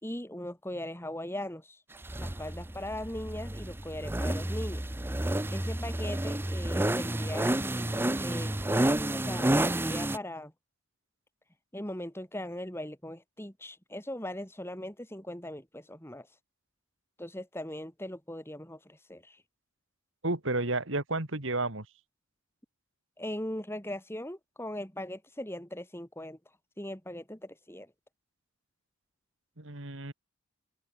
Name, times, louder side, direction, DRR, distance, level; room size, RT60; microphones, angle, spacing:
voice 1, 0.0-1.8 2.2-4.8 5.5-7.6 8.2-10.5 11.7-16.3 17.2-19.4 23.2-26.4 26.8-27.9, left 1 dB, 10° left, 3.3 m, -39 dB
sound 1, 2.0-10.2, right 1 dB, 10° right, 0.6 m, -30 dB
voice 2, 20.2-21.9 29.6-30.1, right 2 dB, 60° right, 2.5 m, -31 dB
head